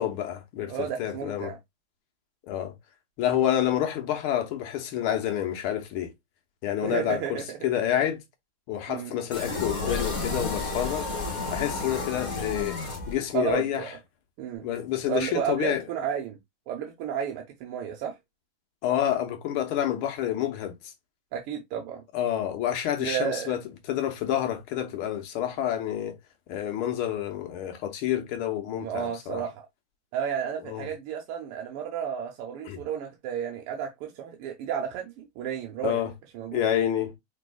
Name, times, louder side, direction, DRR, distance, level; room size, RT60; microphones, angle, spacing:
voice 1, 0.0-1.5 2.5-2.7 3.2-6.1 6.6-8.2 8.7-11.1 11.5-12.8 13.1-13.8 14.6-15.8 18.8-20.9 22.1-23.6 23.9-26.2 26.5-29.4 30.6-30.9 32.6-32.8 35.8-36.1 36.5-37.2, left 11 dB, 85° left, 1.7 m, -28 dB
voice 2, 0.7-1.6 6.8-7.7 8.9-9.1 13.3-13.9 14.4-14.7 15.1-16.4 16.7-18.2 21.3-22.0 23.0-23.5 28.8-29.6 30.1-36.0 36.3-36.7, right 8 dB, 85° right, 1.6 m, -32 dB
sound 1, 9.3-13.5, left 3 dB, 25° left, 1.7 m, -31 dB
5.2 x 3.4 x 2.2 m
omnidirectional pair, 2.3 m